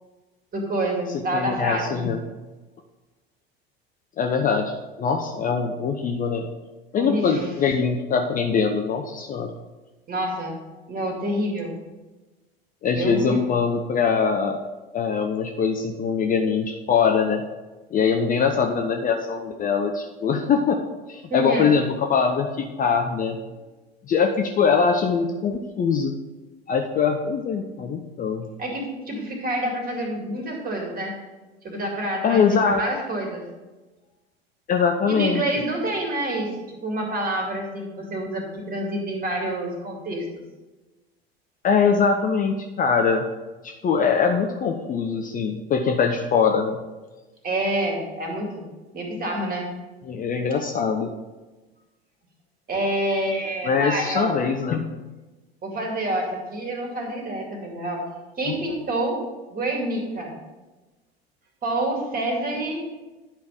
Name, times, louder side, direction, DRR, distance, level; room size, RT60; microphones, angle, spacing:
voice 1, 0.5-2.0 7.0-7.5 10.1-10.6 10.9-11.7 12.9-13.4 21.3-21.7 28.6-31.2 31.6-33.5 35.1-36.5 36.8-40.3 47.4-48.7 48.9-49.7 52.7-54.4 55.6-58.1 58.4-59.2 59.5-60.4 61.6-62.9, right 1 dB, 30° right, 1 dB, 2.4 m, -27 dB
voice 2, 1.3-2.2 4.2-6.5 6.9-9.5 12.8-14.6 14.9-17.4 17.9-20.8 21.1-23.4 24.1-26.2 26.7-28.5 32.2-32.8 34.7-35.4 41.6-43.3 43.6-46.8 50.0-51.1 53.6-54.9 58.5-58.6, left 6 dB, 25° left, 4 dB, 0.7 m, -22 dB
10.0 x 5.2 x 5.1 m, 1.2 s
figure-of-eight pair, 75°, 31 cm